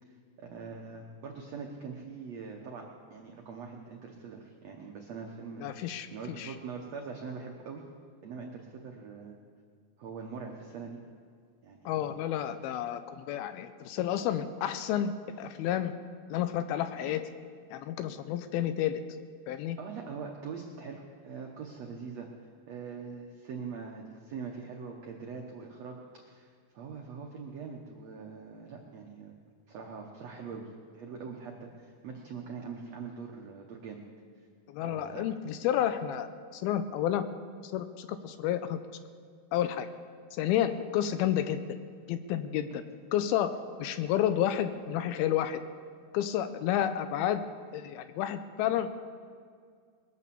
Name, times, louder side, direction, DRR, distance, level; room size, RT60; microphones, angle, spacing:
voice 1, 0.1-2.8 3.1-7.8 8.2-9.4 10.0-11.0 11.6-12.1 19.8-22.3 22.7-29.3 29.7-30.7 30.9-34.0 34.8-35.6 42.7-42.8, right 5 dB, 85° right, 1 dB, 1.4 m, -43 dB
voice 2, 5.6-6.5 11.9-15.9 16.3-17.3 17.7-19.0 19.5-19.8 34.7-36.3 36.5-37.2 37.6-38.8 39.5-39.9 40.3-41.6 42.1-42.7 43.1-43.5 43.8-45.6 46.1-47.4 47.7-49.0, left 11 dB, 80° left, 11 dB, 2.3 m, -30 dB
21.5 x 8.5 x 7.0 m, 2.1 s
omnidirectional pair, 4.6 m